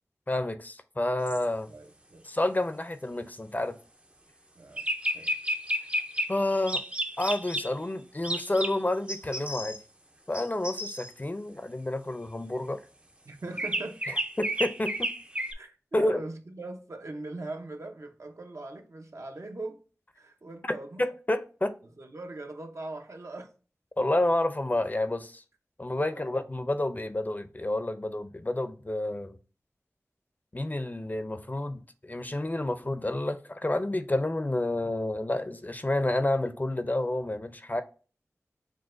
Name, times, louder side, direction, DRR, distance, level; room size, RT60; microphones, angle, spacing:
voice 1, 0.3-1.7 2.3-3.8 6.3-6.8 7.2-9.8 10.3-12.8 14.4-15.1 15.9-16.3 21.0-21.7 24.0-25.4 25.8-29.4 30.5-37.8, left 1 dB, 30° left, 0.5 m, -29 dB
sound 1, 1.3-1.5 4.8-6.4 6.7-7.7 8.2-8.8 9.1-9.8 10.3-11.1 13.6-15.5, equal, 20° right, 0.5 m, -32 dB
voice 2, 1.7-2.3 4.6-4.9 5.1-5.3 13.2-14.0 15.5-19.8 20.2-21.0 22.0-23.5 25.9-26.3, right 2 dB, 60° right, 0.7 m, -41 dB
6.2 x 2.2 x 2.5 m
wide cardioid pair, 45°, 6 cm